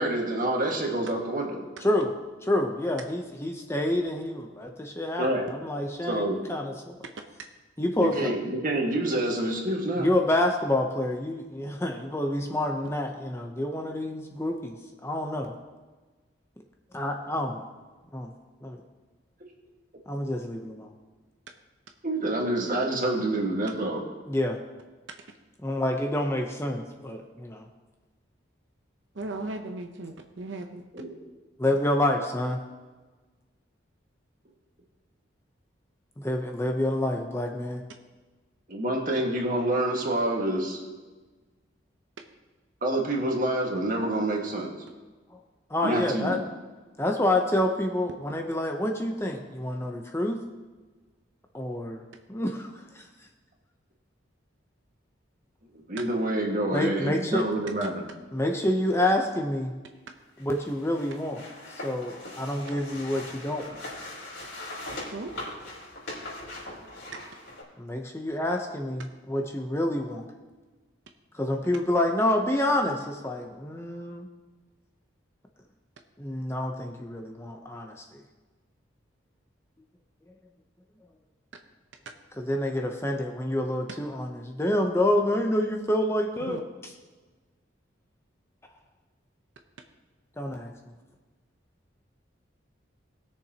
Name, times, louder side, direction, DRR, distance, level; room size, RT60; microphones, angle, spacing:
voice 1, 0.0-1.6 5.2-5.5 6.0-6.4 8.0-10.1 22.0-24.1 30.9-31.2 38.7-40.8 42.8-44.7 45.8-46.4 55.7-58.0, right 1 dB, 40° right, 0 dB, 1.8 m, -27 dB
voice 2, 1.8-2.1 2.4-7.0 7.8-8.3 10.0-14.7 15.0-15.5 16.9-17.6 18.1-18.3 18.6-18.8 20.1-20.9 24.3-24.6 25.6-27.7 31.6-32.6 36.2-37.8 45.7-46.4 47.0-50.4 51.5-52.0 52.3-53.0 56.7-57.5 58.3-59.7 60.4-61.4 61.8-63.7 67.8-70.3 71.3-74.3 76.2-78.2 82.4-86.9 90.4-90.7, left 1 dB, 15° left, 3 dB, 0.7 m, -28 dB
voice 3, 29.2-30.8 65.1-65.3 86.5-86.6, right 2 dB, 70° right, 4 dB, 0.8 m, -36 dB
sound 1, 60.4-67.6, left 1 dB, 70° left, 3.7 m, -41 dB
20.0 x 6.7 x 2.9 m, 1.3 s
head